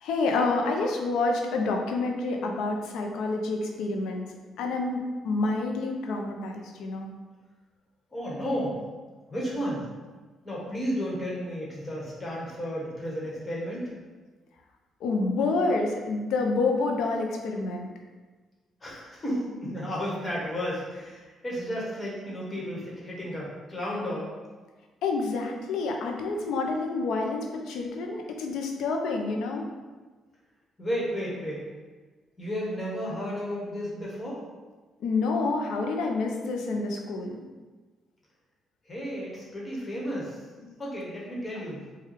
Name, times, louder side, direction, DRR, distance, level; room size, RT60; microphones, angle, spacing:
voice 1, 0.0-4.3 4.6-7.1 15.0-17.9 25.0-29.6 35.0-37.4 40.6-40.8, left 3 dB, 85° left, 2 dB, 0.6 m, -28 dB
voice 2, 8.1-8.8 9.3-9.8 10.4-13.9 18.8-24.3 30.8-31.6 32.4-34.4 38.9-40.4 40.8-41.9, equal, 25° left, -5 dB, 1.3 m, -33 dB
4.6 x 2.3 x 3.3 m, 1.3 s
cardioid pair, 90°, 0 cm